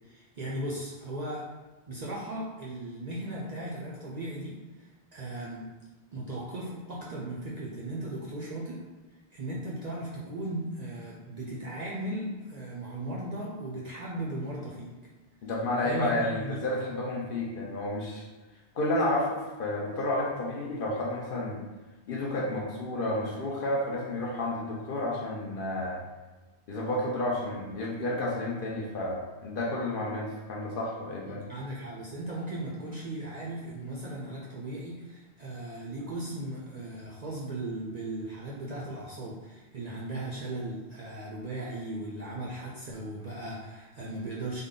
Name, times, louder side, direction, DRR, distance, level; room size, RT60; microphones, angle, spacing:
voice 1, 0.0-1.5 1.9-5.7 6.1-8.8 9.3-14.9 15.8-16.6 31.3-44.6, right 1 dB, 50° right, -5 dB, 0.5 m, -37 dB
voice 2, 15.4-18.3 18.7-21.6 22.1-26.0 26.7-31.4, left 1 dB, 55° left, -3 dB, 0.8 m, -31 dB
3.5 x 2.2 x 3.7 m, 1.2 s
omnidirectional pair, 1.2 m